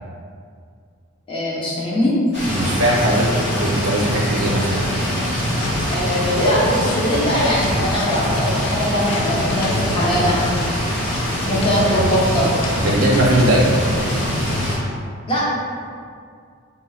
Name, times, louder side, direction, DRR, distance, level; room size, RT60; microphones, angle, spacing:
voice 1, 1.3-2.2 5.9-10.4 11.4-12.5 15.3-15.5, equal, 25° left, -7 dB, 0.5 m, -21 dB
sound 1, 2.3-14.8, equal, 55° left, 1.0 m, -23 dB
voice 2, 2.5-5.0 11.7-12.0 12.8-13.9, right 1 dB, 75° right, -3 dB, 0.5 m, -19 dB
sound 2, 5.6-13.6, left 2 dB, 80° left, 0.3 m, -30 dB
3.6 x 2.1 x 2.3 m, 2.2 s
head